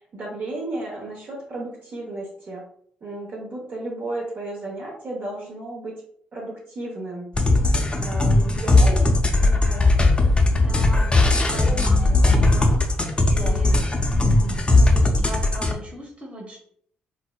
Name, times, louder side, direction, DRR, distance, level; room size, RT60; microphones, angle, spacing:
voice 1, 0.1-2.7 3.0-5.9 6.3-7.3 8.0-9.0 9.4-9.9 11.5-12.4 13.3-13.6, right 2 dB, 55° right, -3 dB, 1.0 m, -33 dB
sound 1, 7.3-15.7, left 2 dB, 25° left, 0.5 m, -18 dB
voice 2, 8.4-8.9 10.5-12.8 13.2-13.8 14.1-16.6, right 1 dB, 35° right, -1 dB, 1.0 m, -37 dB
3.7 x 2.1 x 2.3 m, 0.63 s
hypercardioid pair, 50°, 4 cm